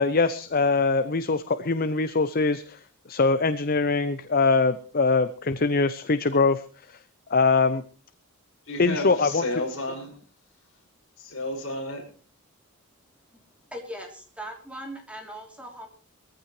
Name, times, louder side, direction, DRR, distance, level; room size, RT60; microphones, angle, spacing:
voice 1, 0.0-2.8 3.1-6.6 6.9-7.0 7.3-7.8 8.8-9.5, left 4 dB, 40° left, 12 dB, 0.7 m, -23 dB
voice 2, 8.7-10.1 11.2-12.0, left 2 dB, 60° left, 1 dB, 5.9 m, -32 dB
voice 3, 13.7-15.9, equal, 5° right, 1 dB, 3.2 m, -39 dB
21.5 x 15.0 x 3.2 m, 0.39 s
head